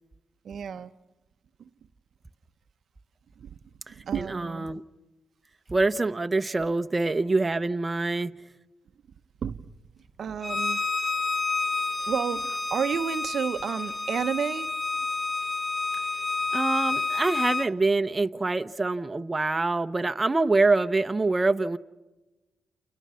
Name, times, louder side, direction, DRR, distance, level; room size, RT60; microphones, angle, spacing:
voice 1, 0.4-0.9 1.6-1.7 3.4-3.6 3.9-4.7 9.4-9.7 10.2-10.8 12.1-14.7, right 7 dB, 65° right, 0.8 m, -31 dB
voice 2, 3.9-4.8 5.7-8.3 16.5-21.8, right 3 dB, 25° right, 0.9 m, -25 dB
Bowed string instrument, 10.4-17.7, left 3 dB, 15° left, 0.9 m, -29 dB
29.5 x 29.0 x 5.7 m
cardioid pair, 65°, 0 cm